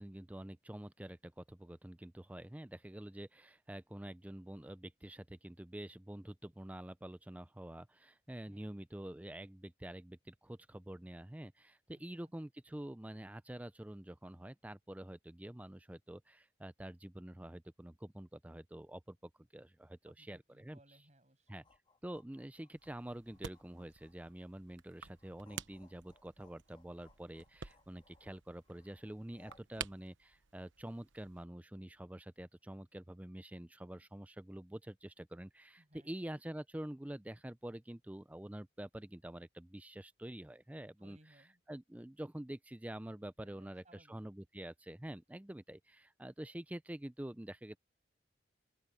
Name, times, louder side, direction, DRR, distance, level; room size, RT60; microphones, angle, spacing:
voice 1, 0.0-20.8 21.5-21.6 22.0-41.2 41.7-43.8 44.1-47.8, right 1 dB, 5° right, 0.4 m, -47 dB
voice 2, 20.1-21.6 35.8-36.1 41.0-41.6 43.4-44.2, right 1 dB, 35° right, 7.2 m, -65 dB
sound 1, 21.5-24.5 24.9-29.8, left 2 dB, 25° left, 1.9 m, -67 dB
sound 2, 22.7-31.4, right 7 dB, 75° right, 1.1 m, -52 dB
open air
head